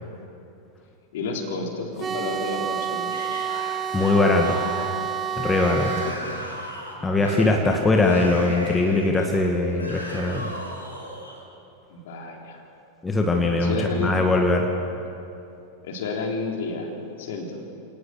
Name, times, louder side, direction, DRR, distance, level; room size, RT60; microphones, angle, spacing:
voice 1, 1.1-3.1 6.0-6.6 7.2-8.1 11.9-12.6 13.5-14.1 15.8-17.6, left 3 dB, 55° left, 1 dB, 3.6 m, -31 dB
sound 1, 2.0-6.2, right 8 dB, 25° right, 1.0 m, -29 dB
Yell / Screaming, 3.1-11.4, equal, 85° left, 5.3 m, -37 dB
voice 2, 3.9-4.7 5.4-5.9 7.0-10.5 13.0-14.7, left 2 dB, 15° left, 2 dB, 1.9 m, -21 dB
28.0 x 18.5 x 6.8 m, 2.7 s
figure-of-eight pair, 90°, 0 cm